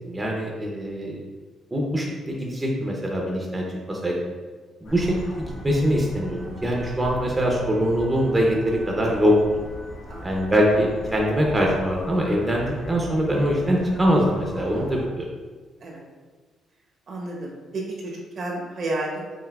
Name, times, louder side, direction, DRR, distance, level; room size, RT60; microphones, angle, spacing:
voice 1, 0.1-1.2 1.7-4.2 4.8-9.3 10.2-15.3, equal, 20° right, -2 dB, 0.7 m, -23 dB
sound 1, 4.8-15.1, left 1 dB, 70° left, 1.2 m, -39 dB
voice 2, 10.1-10.4 14.6-15.0 15.8-16.0 17.1-19.4, right 2 dB, 60° right, -2 dB, 1.1 m, -32 dB
5.7 x 2.6 x 2.4 m, 1.4 s
cardioid pair, 90°, 0 cm